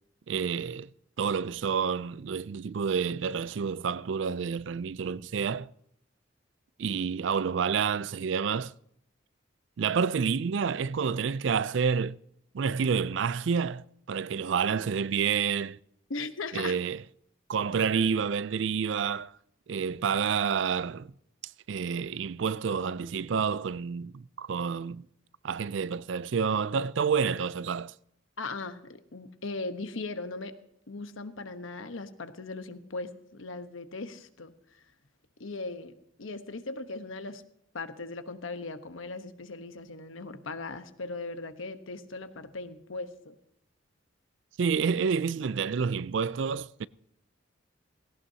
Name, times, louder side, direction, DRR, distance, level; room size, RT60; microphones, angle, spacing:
voice 1, 0.3-0.9 1.2-5.7 6.8-8.7 9.8-12.2 12.5-15.8 16.5-17.0 17.5-19.4 19.7-21.1 21.7-25.1 25.4-27.9 44.6-46.9, right 6 dB, 70° right, 0.4 m, -29 dB
voice 2, 16.1-16.8 28.4-30.5 30.9-34.5 35.4-37.4 37.7-43.4, left 3 dB, 85° left, 1.1 m, -38 dB
18.0 x 17.5 x 2.8 m
head